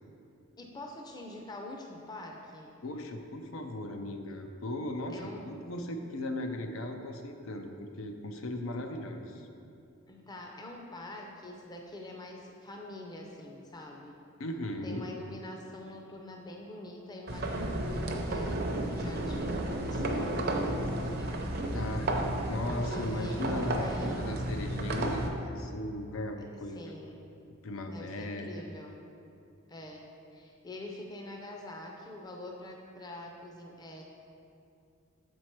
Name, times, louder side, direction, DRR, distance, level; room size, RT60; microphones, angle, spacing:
voice 1, 0.6-2.7 5.1-5.4 10.1-14.2 14.8-22.1 22.9-24.5 26.7-27.2 27.9-29.0 29.7-34.0, left 1 dB, 20° left, 0 dB, 0.5 m, -45 dB
voice 2, 2.8-9.5 14.4-15.1 21.7-22.1 22.5-26.9 27.6-28.6, left 1 dB, 75° left, 4 dB, 0.5 m, -37 dB
sound 1, 17.3-25.3, right 1 dB, 50° right, 0.6 m, -32 dB
7.2 x 4.5 x 4.5 m, 2.6 s
head